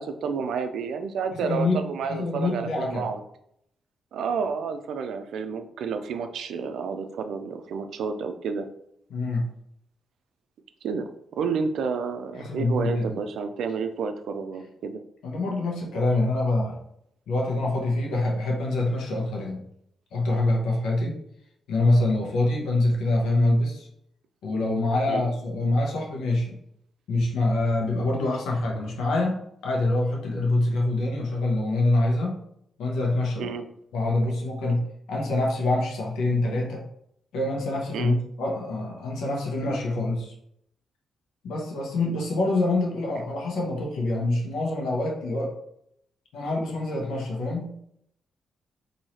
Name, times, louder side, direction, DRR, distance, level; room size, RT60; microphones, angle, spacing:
voice 1, 0.0-3.2 4.1-8.7 10.8-15.0 25.1-25.2 33.4-33.7 37.9-38.2, right 5 dB, 80° right, 8 dB, 0.4 m, -30 dB
voice 2, 1.4-3.1 9.1-9.5 12.3-13.2 15.2-16.8 17.3-19.6 20.1-21.1 21.7-23.9 24.4-26.5 27.1-32.4 32.8-33.5 33.9-36.8 37.3-40.3 41.4-45.6 46.3-47.8, left 2 dB, 85° left, -1 dB, 0.9 m, -25 dB
3.0 x 2.7 x 4.2 m, 0.74 s
cardioid pair, 70°, 0 cm